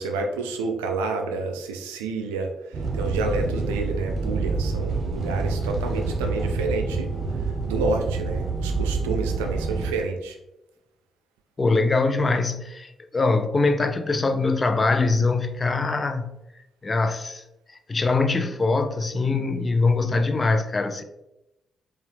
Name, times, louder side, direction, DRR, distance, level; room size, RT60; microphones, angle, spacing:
voice 1, 0.0-7.1 7.7-10.4, right 3 dB, 85° right, 0.4 m, -29 dB
sound 1, 2.7-9.9, right 4 dB, 55° right, 0.9 m, -27 dB
voice 2, 11.6-16.3 16.8-17.4 17.9-21.0, left 3 dB, 35° left, 0.5 m, -23 dB
4.6 x 2.4 x 3.3 m
hypercardioid pair, 40°, 0 cm